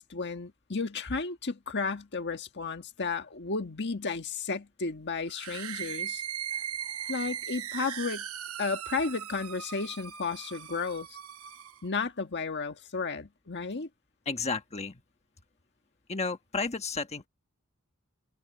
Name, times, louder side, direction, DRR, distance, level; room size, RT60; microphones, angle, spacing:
voice 1, 0.0-6.2 7.1-8.2 8.6-11.2 11.8-13.9, left 4 dB, 55° left, 1.5 m, -33 dB
sound 1, 5.3-11.8, right 9 dB, 75° right, 1.0 m, -38 dB
voice 2, 6.5-7.3 7.7-7.8 14.3-15.0 16.1-17.3, left 4 dB, 30° left, 1.3 m, -34 dB
head